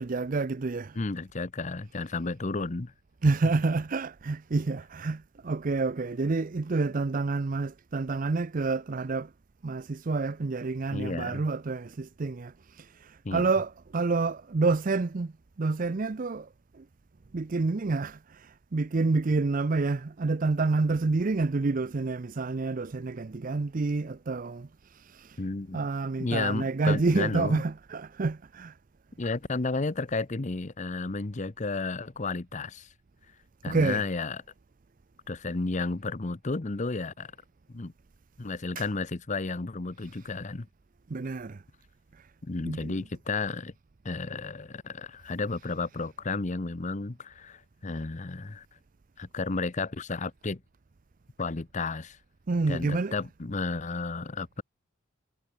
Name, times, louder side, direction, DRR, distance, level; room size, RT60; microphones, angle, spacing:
voice 1, 0.0-1.0 3.2-9.3 9.6-15.3 15.6-16.5 16.8-16.9 17.3-25.4 25.7-28.7 33.7-34.0 38.8-38.9 41.1-41.6 42.6-42.9 52.5-53.1, right 3 dB, 40° right, 0.5 m, -28 dB
voice 2, 0.9-2.9 10.9-11.4 13.2-13.5 25.4-25.8 26.2-27.6 29.2-32.9 33.6-34.4 35.3-37.3 37.7-37.9 38.4-40.7 42.4-43.7 44.0-48.7 49.2-50.6 51.4-52.2 52.7-54.6, left 3 dB, 35° left, 0.8 m, -32 dB
head